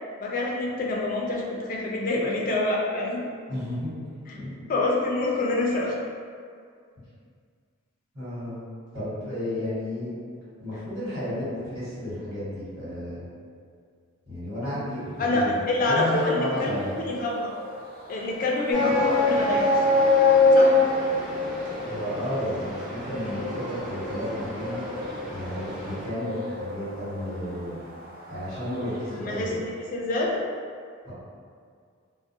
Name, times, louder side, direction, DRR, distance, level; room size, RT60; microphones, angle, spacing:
voice 1, 0.2-3.2 4.3-4.4 4.7-6.0 15.2-16.7 17.0-17.6 18.1-20.0 20.5-20.8 29.1-30.5, left 2 dB, 40° left, -2 dB, 0.3 m, -26 dB
voice 2, 3.5-3.9 4.3-4.5 8.1-8.6 8.9-10.1 10.6-13.3 14.2-15.6 15.8-16.9 21.9-24.8 25.3-27.8 28.3-29.6 31.0-31.1, left 1 dB, 70° right, -13 dB, 1.3 m, -32 dB
sound 1, 15.0-29.7, equal, 45° right, 0.4 m, -40 dB
sound 2, 18.7-26.1, left 2 dB, ahead, 0.6 m, -24 dB
2.5 x 2.0 x 2.6 m, 2.2 s
head